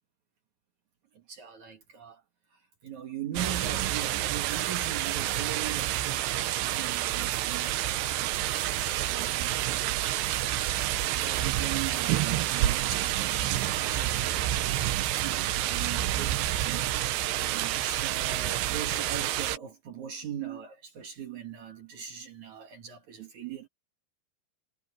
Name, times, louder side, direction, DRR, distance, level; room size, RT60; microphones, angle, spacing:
voice 1, 1.1-2.2 2.5-23.7, right 8 dB, 55° right, 2.1 m, -41 dB
sound 1, 3.4-19.6, right 13 dB, 75° right, 2.6 m, -29 dB
omnidirectional pair, 6.0 m